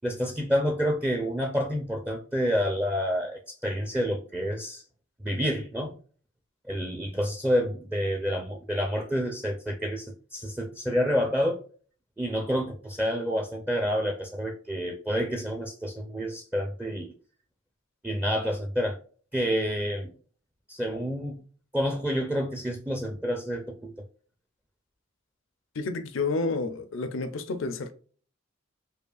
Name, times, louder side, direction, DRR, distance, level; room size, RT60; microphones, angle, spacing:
voice 1, 0.0-4.8 5.2-5.9 6.7-11.6 12.2-17.1 18.0-19.0 19.3-20.1 20.7-21.4 21.7-23.9, equal, 10° right, 0.4 m, -28 dB
voice 2, 25.8-27.9, left 3 dB, 70° left, 0.5 m, -30 dB
4.9 x 2.4 x 2.4 m
head